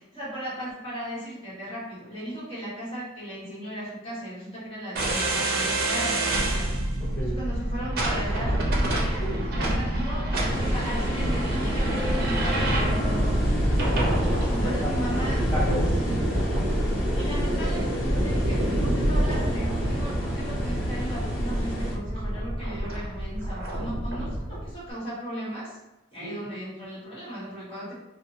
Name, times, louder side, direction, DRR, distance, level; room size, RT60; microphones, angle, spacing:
voice 1, 0.0-6.7 7.2-9.2 9.5-13.2 14.5-15.4 16.0-16.2 17.2-25.8 26.1-27.9, right 1 dB, 30° left, -9 dB, 1.3 m, -36 dB
sound 1, 5.0-24.7, right 1 dB, 50° right, 0.5 m, -27 dB
voice 2, 7.0-7.4 9.2-9.4 11.7-14.1 14.5-14.9 15.5-15.8 26.2-26.5, equal, 10° left, -11 dB, 0.9 m, -34 dB
sound 2, 10.5-21.9, equal, 50° left, 0.7 m, -29 dB
2.7 x 2.2 x 2.7 m, 0.95 s
head